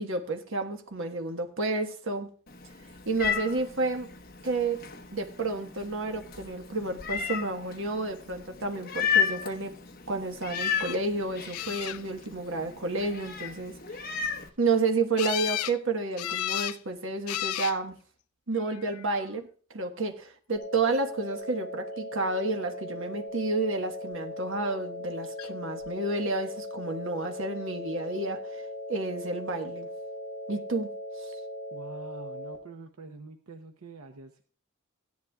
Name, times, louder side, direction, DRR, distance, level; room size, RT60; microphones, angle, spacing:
voice 1, 0.0-2.3 3.1-4.1 4.4-4.8 5.1-9.7 10.1-13.7 14.0-14.1 14.6-17.9 18.5-19.5 19.7-28.6 28.9-29.9 30.5-30.9 31.2-31.3, right 3 dB, 60° right, 5 dB, 1.3 m, -30 dB
Meow, 2.5-14.5, left 7 dB, 45° left, 1.1 m, -34 dB
sound 1, 10.5-11.0 11.5-12.3 15.2-15.8 16.2-16.8 17.3-17.8 18.7-19.2 25.4-25.5 25.8-25.9, left 13 dB, 80° left, 0.4 m, -33 dB
sound 2, 20.6-32.6, left 1 dB, 15° left, 4.0 m, -39 dB
voice 2, 31.7-34.4, right 3 dB, 80° right, 6 dB, 0.8 m, -46 dB
16.5 x 10.5 x 2.3 m, 0.42 s
head